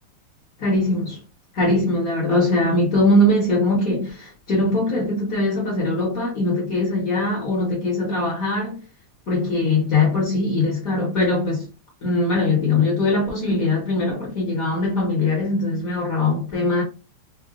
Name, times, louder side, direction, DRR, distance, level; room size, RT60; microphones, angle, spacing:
voice 1, 0.6-1.2 1.5-8.8 9.3-11.7 12.0-16.8, left 2 dB, 55° left, 1.1 m, -21 dB
3.9 x 2.1 x 2.3 m
omnidirectional pair, 2.4 m